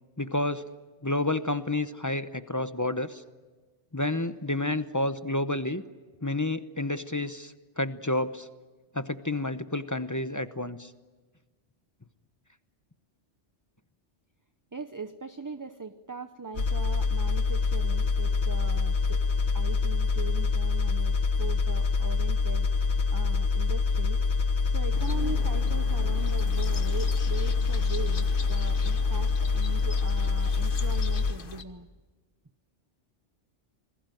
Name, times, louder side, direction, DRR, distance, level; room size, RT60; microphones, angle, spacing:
voice 1, 0.2-0.6 1.0-3.2 3.9-5.8 6.2-8.5 8.9-10.9, left 2 dB, 20° left, 11 dB, 0.8 m, -30 dB
voice 2, 14.7-19.2 19.5-24.2 24.7-31.9, right 4 dB, 20° right, 9 dB, 0.7 m, -40 dB
sound 1, 16.6-31.3, left 4 dB, 65° left, 1.6 m, -26 dB
sound 2, 24.9-31.6, left 4 dB, 50° left, 1.4 m, -42 dB
28.0 x 20.5 x 9.2 m, 1.3 s
omnidirectional pair, 1.2 m